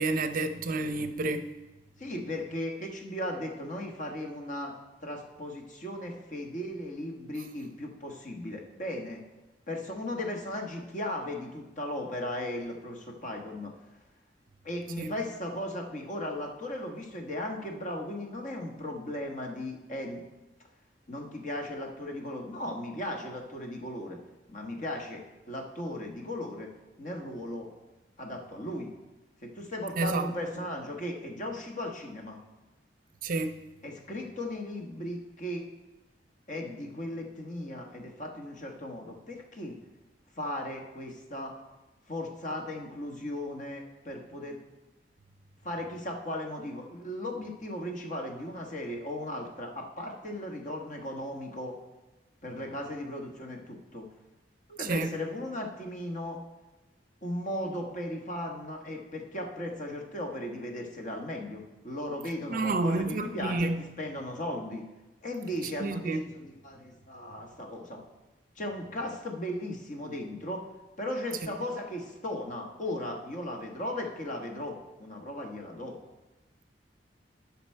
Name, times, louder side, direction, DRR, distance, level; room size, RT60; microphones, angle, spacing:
voice 1, 0.0-1.5 15.0-15.1 30.0-30.3 33.2-33.6 54.8-55.1 62.5-63.8 65.8-66.2, right 3 dB, 50° right, 0.5 m, -29 dB
voice 2, 2.0-4.7 5.0-9.2 9.7-13.7 14.6-20.2 21.1-24.2 24.5-26.7 27.0-27.7 28.2-28.9 29.4-32.4 33.8-35.7 36.5-39.8 40.4-41.5 42.1-44.6 45.6-51.8 52.4-54.1 54.7-56.4 57.2-63.7 64.0-64.8 65.2-68.0 68.6-70.7 71.0-76.0, left 1 dB, 45° left, 1.3 m, -36 dB
11.0 x 5.9 x 4.4 m
head